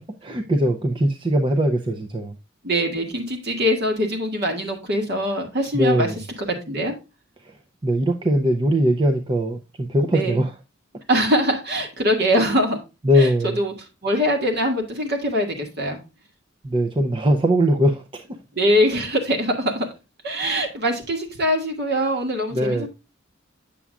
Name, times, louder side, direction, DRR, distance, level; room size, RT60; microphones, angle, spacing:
voice 1, 0.2-2.4 5.7-6.2 7.4-7.6 7.8-10.5 13.0-13.6 16.6-18.4 22.5-22.9, equal, 25° right, 0.5 m, -21 dB
voice 2, 2.6-6.1 6.5-6.9 10.1-10.4 11.1-12.8 13.2-13.7 14.0-16.0 18.5-19.9 20.2-22.9, equal, 50° right, 2.0 m, -23 dB
8.5 x 7.1 x 2.3 m
head